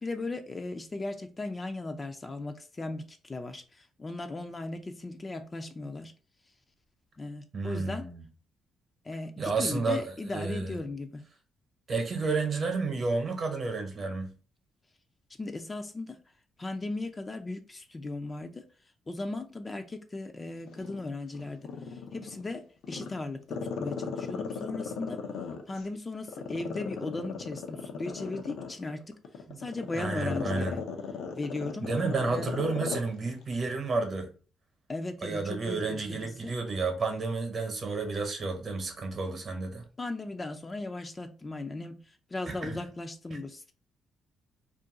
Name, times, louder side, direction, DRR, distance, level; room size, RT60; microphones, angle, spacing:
voice 1, 0.0-6.1 7.2-8.0 9.0-11.2 15.4-16.2 16.6-18.6 19.1-25.2 25.7-29.2 29.6-30.8 31.3-31.9 32.3-32.5 34.9-36.5 40.0-42.0 42.3-43.7, left 2 dB, 25° left, 0.4 m, -37 dB
voice 2, 7.5-8.3 9.4-10.8 11.9-14.3 29.5-29.7 29.9-30.8 31.8-34.3 35.2-39.9 42.5-42.8 43.3-43.4, right 3 dB, 45° right, 0.9 m, -31 dB
Growling, 20.7-22.4 22.8-25.8 26.3-33.1 33.4-33.5, left 6 dB, 85° left, 0.6 m, -36 dB
2.5 x 2.2 x 3.7 m
cardioid pair, 90°, 0 cm